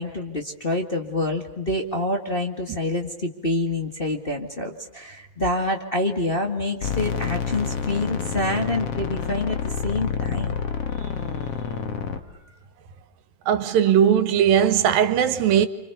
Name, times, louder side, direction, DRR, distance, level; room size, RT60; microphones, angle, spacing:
voice 1, 0.0-10.6, left 2 dB, 25° left, 1.3 m, -27 dB
sound 1, 6.8-12.2, left 6 dB, 50° left, 2.4 m, -28 dB
voice 2, 13.5-15.7, right 9 dB, 90° right, 3.2 m, -18 dB
30.0 x 26.0 x 6.9 m
omnidirectional pair, 3.9 m